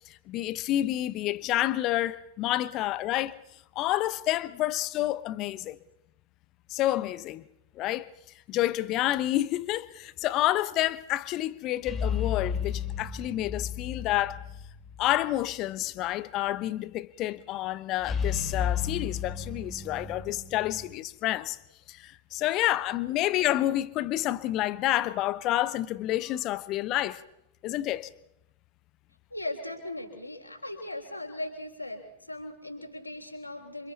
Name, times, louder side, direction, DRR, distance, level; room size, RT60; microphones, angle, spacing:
voice 1, 0.1-3.3 3.7-5.8 6.7-7.4 7.8-8.1 8.5-14.4 15.0-21.6 21.9-27.2 27.6-28.1, left 14 dB, 35° left, 0.9 m, -29 dB
sound 1, 11.8-15.1 15.4-15.5 18.0-20.9, left 7 dB, 15° left, 3.2 m, -33 dB
voice 2, 29.3-33.9, left 1 dB, 85° left, 3.5 m, -38 dB
28.5 x 25.5 x 4.2 m
figure-of-eight pair, 90°, 0 cm